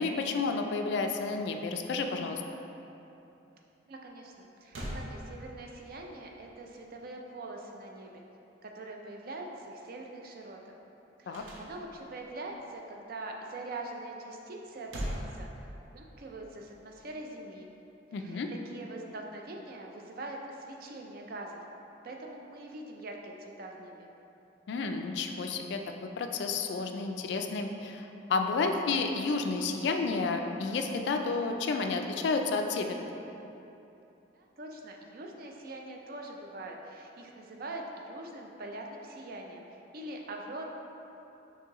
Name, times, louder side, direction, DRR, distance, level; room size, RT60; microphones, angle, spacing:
voice 1, 0.0-2.4 11.3-11.4 18.1-18.5 24.7-33.1, left 4 dB, 65° left, 5 dB, 0.3 m, -31 dB
voice 2, 3.9-8.2 8.6-10.8 11.2-17.7 18.1-18.4 18.6-21.6 22.0-24.1 34.3-40.6, right 2 dB, 50° right, 1 dB, 0.4 m, -43 dB
sound 1, 4.3-4.4 4.7-5.9 11.3-12.2 14.5-16.1, equal, 85° right, 0.7 m, -40 dB
6.0 x 2.7 x 2.9 m, 2.9 s
head